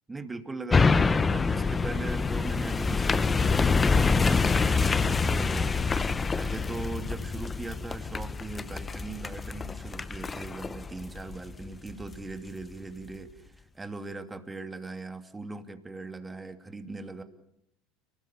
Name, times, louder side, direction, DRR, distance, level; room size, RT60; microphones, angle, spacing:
voice 1, 0.1-6.0 6.4-17.2, right 3 dB, 15° right, 7 dB, 2.6 m, -40 dB
sound 1, 0.7-12.2 12.6-12.7, left 4 dB, 20° left, 1.0 m, -26 dB
30.0 x 19.5 x 7.2 m, 0.77 s
figure-of-eight pair, 75°, 0 cm